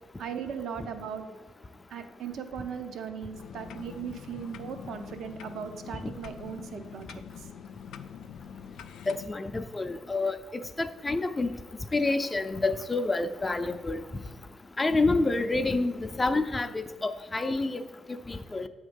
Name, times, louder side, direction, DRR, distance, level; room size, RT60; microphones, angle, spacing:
voice 1, 0.2-1.2 1.9-7.5, right 7 dB, 70° right, 8 dB, 0.6 m, -38 dB
sound 1, 3.3-9.3, left 8 dB, 80° left, 0.3 m, -45 dB
voice 2, 9.1-10.4 10.8-11.5 11.9-14.0 14.8-17.8 18.3-18.7, left 3 dB, 20° left, 9 dB, 0.4 m, -28 dB
7.9 x 3.6 x 5.2 m, 1.3 s
cardioid pair, 90°, 0 cm